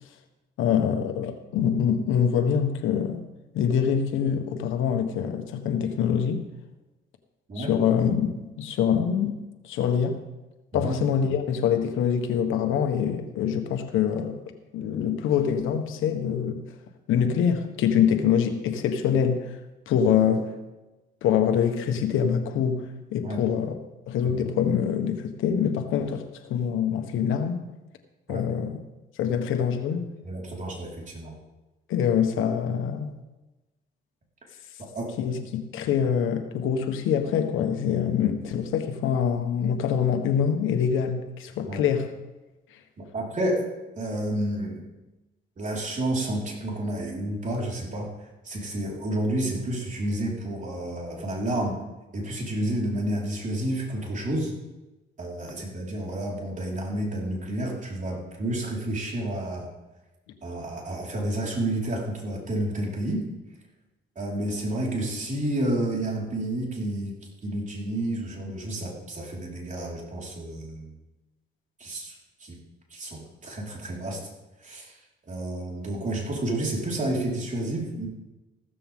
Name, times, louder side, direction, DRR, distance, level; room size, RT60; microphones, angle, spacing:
voice 1, 0.6-3.2 3.5-6.4 7.6-9.4 9.6-10.2 10.7-14.4 14.7-16.6 17.1-19.6 19.9-20.5 21.2-22.9 23.1-23.8 24.1-27.6 28.3-28.8 29.2-30.1 31.9-33.1 35.2-42.1, left 8 dB, 90° left, 6 dB, 1.4 m, -25 dB
voice 2, 30.2-31.3 34.9-35.1 41.7-41.8 43.1-43.7 44.0-44.8 45.6-48.1 48.4-51.8 52.1-54.5 55.2-59.7 60.4-63.2 64.1-67.2 67.4-70.9 71.8-72.1 72.4-72.6 72.9-74.2 74.6-74.9 75.3-78.1, right 1 dB, 40° right, -3 dB, 4.9 m, -30 dB
15.0 x 14.0 x 3.8 m, 1.1 s
cardioid pair, 90°, 20 cm